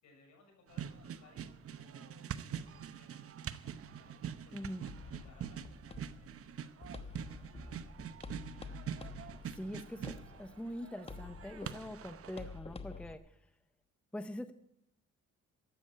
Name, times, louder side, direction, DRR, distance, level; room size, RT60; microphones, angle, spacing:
voice 1, 0.0-8.2, left 3 dB, 70° left, 2 dB, 6.2 m, -65 dB
sound 1, 0.7-12.6, right 9 dB, 50° right, 0.8 m, -45 dB
voice 2, 4.5-4.8 9.1-9.3 9.5-13.4 14.1-14.5, equal, 5° left, 10 dB, 0.7 m, -44 dB
sound 2, 4.9-13.1, left 4 dB, 20° left, 1.1 m, -49 dB
13.0 x 8.0 x 9.7 m, 0.78 s
cardioid pair, 90°, 30 cm